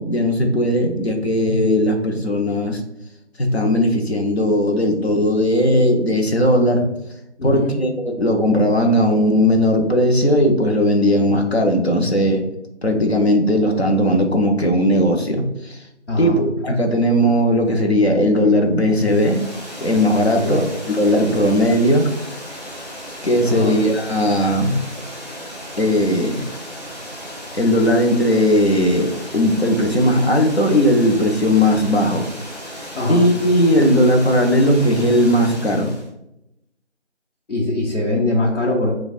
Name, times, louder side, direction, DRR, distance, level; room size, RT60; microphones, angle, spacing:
voice 1, 0.0-2.8 3.4-6.9 7.4-12.4 12.8-15.8 16.2-19.4 19.8-22.1 23.2-24.8 25.8-26.4 27.5-32.2 33.1-35.9, equal, 60° left, 2 dB, 0.8 m, -17 dB
voice 2, 7.4-7.8 16.1-16.4 20.4-20.6 23.4-23.8 32.9-33.3 37.5-38.9, left 2 dB, 85° left, -5 dB, 1.1 m, -21 dB
Water, 18.9-36.1, equal, 35° left, 0.9 m, -35 dB
6.2 x 2.4 x 2.5 m, 0.84 s
figure-of-eight pair, 170°, 35 cm